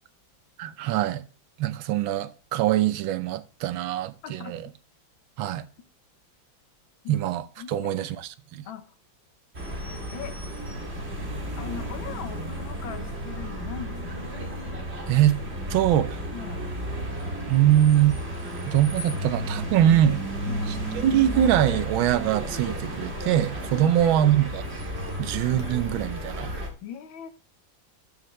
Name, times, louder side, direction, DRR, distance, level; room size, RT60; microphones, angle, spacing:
voice 1, 0.6-1.2 1.6-4.7 5.4-5.6 7.1-8.7 15.1-15.4 15.7-16.2 17.5-18.2 18.7-20.2 20.9-24.6 25.2-26.5, right 12 dB, 90° right, 1.5 m, -23 dB
voice 2, 4.2-4.7 7.0-7.1 7.6-8.0 8.7-8.9 10.1-10.4 11.6-14.2 16.3-16.7 20.5-20.8 23.8-24.0 26.8-27.3, left 8 dB, 80° left, 1.8 m, -39 dB
sound 1, 9.5-26.7, equal, 35° right, 2.2 m, -33 dB
12.5 x 6.6 x 3.2 m
omnidirectional pair, 2.1 m